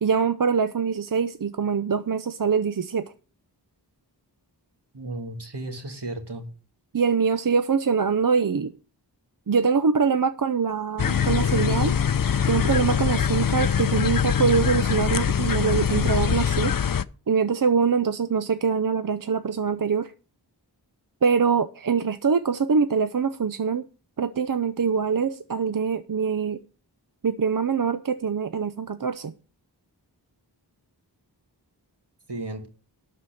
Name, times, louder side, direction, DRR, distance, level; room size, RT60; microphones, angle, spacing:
voice 1, 0.0-3.1 6.9-8.7 9.5-12.0 12.5-16.8 17.3-20.1 21.2-23.8 24.2-26.6 27.2-29.3, right 6 dB, 50° right, 0.6 m, -24 dB
voice 2, 4.9-6.5 32.3-32.7, right 2 dB, 70° right, 2.4 m, -34 dB
sound 1, 11.0-17.0, left 8 dB, 50° left, 0.6 m, -23 dB
12.0 x 4.6 x 8.4 m
wide cardioid pair, 40°, 42 cm